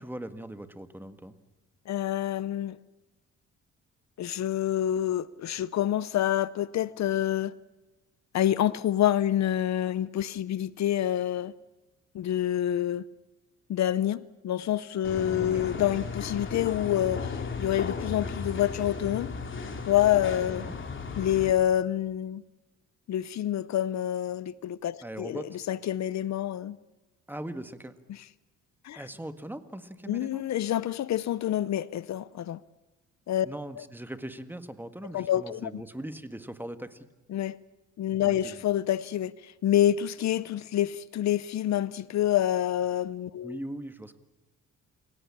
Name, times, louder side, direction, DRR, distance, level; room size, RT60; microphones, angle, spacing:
voice 1, 0.0-1.3 15.5-15.7 20.5-20.7 25.0-25.6 27.3-28.0 28.9-30.4 33.4-37.1 38.2-38.6 43.4-44.2, right 1 dB, 5° right, 1.7 m, -40 dB
voice 2, 1.9-2.8 4.2-7.5 8.3-11.5 12.1-13.0 13.7-19.3 19.9-20.7 21.2-22.4 23.1-25.4 25.7-26.8 28.8-29.0 30.1-32.6 33.3-33.5 35.1-35.7 37.3-37.6 38.0-43.6, left 11 dB, 65° left, 0.8 m, -27 dB
sound 1, 15.0-21.5, left 4 dB, 40° left, 3.2 m, -35 dB
28.5 x 17.0 x 8.7 m
cardioid pair, 90°, 30 cm